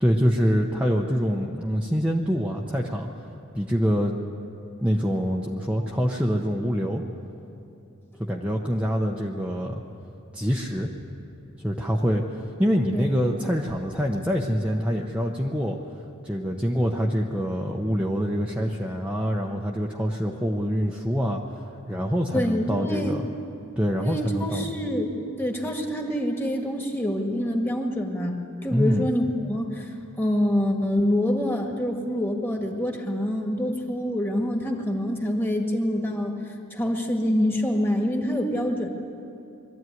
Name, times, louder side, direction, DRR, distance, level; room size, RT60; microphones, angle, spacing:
voice 1, 0.0-3.1 3.5-4.1 4.8-7.0 8.2-9.8 10.3-10.9 11.6-12.2 12.6-15.8 16.2-21.4 21.9-23.2 23.8-24.7 28.7-29.1, equal, 5° right, -2 dB, 0.9 m, -25 dB
voice 2, 22.3-23.2 24.0-25.1 25.4-36.3 36.7-38.9, equal, 10° left, 2 dB, 1.8 m, -26 dB
22.5 x 14.0 x 9.4 m, 2.7 s
head